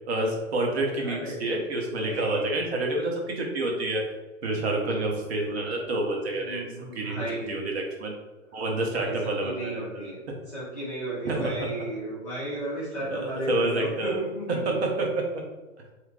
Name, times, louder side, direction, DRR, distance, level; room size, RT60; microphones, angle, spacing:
voice 1, 0.1-4.0 4.4-6.6 7.0-8.1 8.5-9.8 11.2-11.5 12.9-14.2 14.7-15.4, right 2 dB, 50° right, 1 dB, 0.7 m, -28 dB
voice 2, 0.9-1.4 1.8-2.6 6.3-7.6 8.5-10.2 10.5-14.8, right 1 dB, 10° left, -12 dB, 0.5 m, -34 dB
2.9 x 2.4 x 3.5 m, 1.2 s
hypercardioid pair, 150°, 42 cm